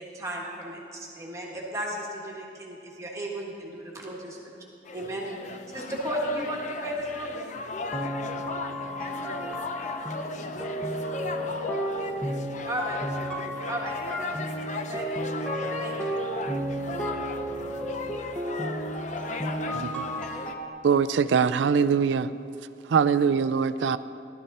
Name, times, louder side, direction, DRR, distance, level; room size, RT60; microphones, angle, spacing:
voice 1, 0.0-4.4 4.9-5.3 5.7-7.4 12.7-13.0 13.7-14.3 14.7-15.1 15.8-16.3, right 1 dB, 15° right, -3 dB, 1.7 m, -34 dB
sound 1, 4.9-20.5, left 3 dB, 40° left, 0.6 m, -37 dB
sound 2, 7.9-20.7, equal, 5° left, 1.2 m, -33 dB
voice 2, 9.8-12.3 12.6-13.0, left 1 dB, 55° left, -6 dB, 3.6 m, -48 dB
voice 3, 19.7-20.0 20.8-22.3 22.9-24.0, right 6 dB, 75° right, 13 dB, 0.4 m, -22 dB
15.5 x 12.0 x 4.2 m, 2.6 s
head